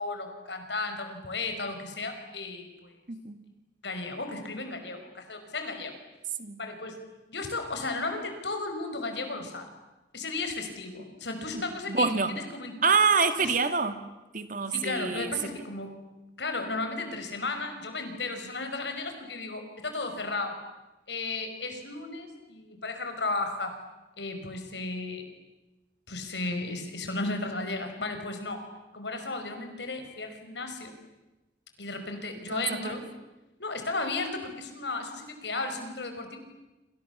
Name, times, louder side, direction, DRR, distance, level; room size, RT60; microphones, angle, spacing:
voice 1, 0.0-2.9 3.8-6.0 6.6-7.0 7.3-9.7 10.1-12.7 13.4-13.5 14.7-16.0 16.4-20.6 21.1-23.8 24.2-25.2 26.1-28.6 28.9-30.9 31.8-33.0 33.6-36.4, left 3 dB, 85° left, 6 dB, 5.4 m, -34 dB
voice 2, 11.5-12.3 12.8-14.0 14.3-15.3 32.5-33.0, right 5 dB, 50° right, 9 dB, 2.0 m, -26 dB
29.0 x 27.5 x 7.2 m, 1.0 s
head